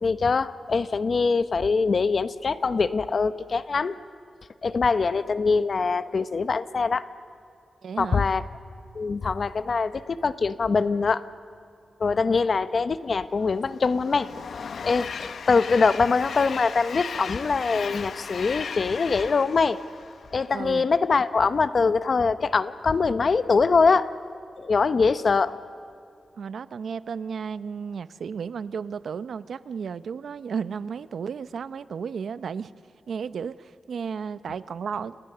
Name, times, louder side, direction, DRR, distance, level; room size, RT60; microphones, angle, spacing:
voice 1, 0.0-4.0 4.6-7.1 8.0-8.4 8.9-11.3 12.0-14.3 14.8-19.8 20.3-24.1 24.6-25.6, left 4 dB, 50° left, 12 dB, 0.9 m, -23 dB
voice 2, 7.8-8.2 20.5-20.9 26.4-32.7 33.1-35.2, right 6 dB, 80° right, 14 dB, 0.7 m, -33 dB
Train, 13.3-20.8, left 6 dB, 75° left, 0.9 m, -37 dB
29.5 x 29.0 x 6.8 m, 2.5 s
wide cardioid pair, 130°, 0 cm